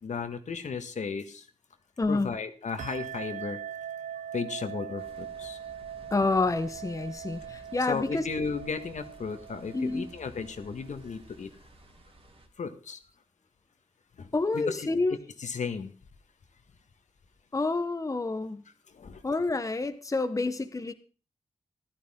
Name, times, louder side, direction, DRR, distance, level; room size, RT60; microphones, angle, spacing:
voice 1, 0.0-1.5 2.1-3.6 4.3-5.6 7.9-11.5 12.6-13.0 14.2-14.3 14.5-14.9 15.4-15.9 18.9-19.2, left 5 dB, 75° left, 8 dB, 1.6 m, -35 dB
voice 2, 2.0-2.3 6.1-8.2 9.7-10.1 14.3-15.2 17.5-18.6 19.2-20.9, left 3 dB, 25° left, 9 dB, 1.0 m, -28 dB
sound 1, 2.8-10.9, right 9 dB, 80° right, 0.6 m, -41 dB
sound 2, 5.0-12.5, right 1 dB, 50° right, 2.9 m, -53 dB
15.0 x 12.0 x 3.7 m, 0.37 s
wide cardioid pair, 100°, 12 cm